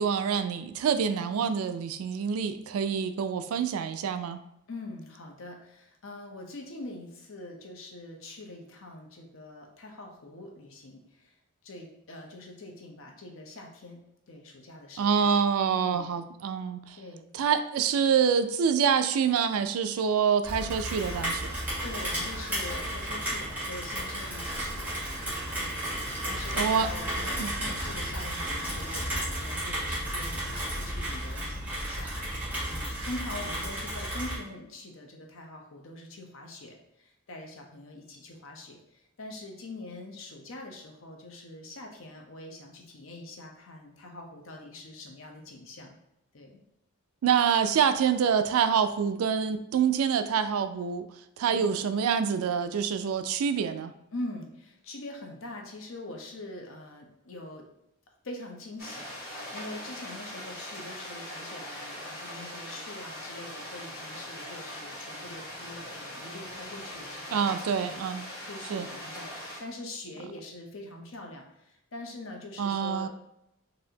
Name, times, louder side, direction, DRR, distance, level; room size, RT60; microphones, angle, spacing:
voice 1, 0.0-4.4 15.0-17.0 17.3-21.6 26.6-26.9 27.4-27.5 47.2-51.1 51.4-53.9 67.3-68.3 68.7-68.9 72.6-73.1, right 7 dB, 85° right, 10 dB, 0.3 m, -26 dB
voice 2, 4.7-11.4 11.6-14.0 14.3-15.3 15.7-16.1 17.0-17.2 21.8-25.3 25.6-25.8 26.2-46.0 46.3-46.6 51.5-51.7 54.1-57.7 58.2-68.0 68.4-73.1, left 2 dB, 65° left, 2 dB, 0.7 m, -43 dB
Rain, 20.4-34.4, right 1 dB, 10° right, 1.4 m, -33 dB
sound 1, 58.8-69.6, left 1 dB, 45° left, 1.4 m, -41 dB
4.1 x 2.6 x 2.7 m, 0.83 s
head